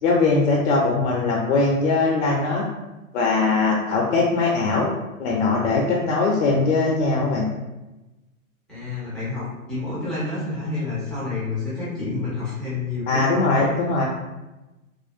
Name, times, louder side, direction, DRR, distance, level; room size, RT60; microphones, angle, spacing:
voice 1, 0.0-2.6 3.1-4.9 5.2-7.5 13.1-14.0, left 3 dB, 55° left, -1 dB, 0.5 m, -21 dB
voice 2, 8.7-13.2 13.6-13.7, left 3 dB, ahead, -11 dB, 0.3 m, -29 dB
2.4 x 2.2 x 2.5 m, 1.0 s
hypercardioid pair, 120°, 41 cm